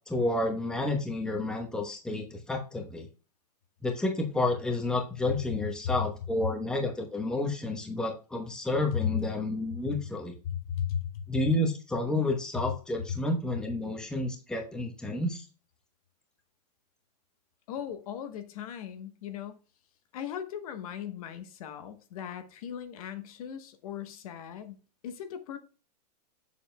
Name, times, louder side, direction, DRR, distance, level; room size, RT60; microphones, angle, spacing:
voice 1, 0.1-3.1 3.8-10.3 11.3-15.4, left 2 dB, 5° left, 1.0 m, -30 dB
voice 2, 10.4-11.2 17.7-19.6 20.1-25.6, left 9 dB, 60° left, 1.1 m, -37 dB
7.1 x 7.1 x 2.2 m
supercardioid pair, 150°, 21 cm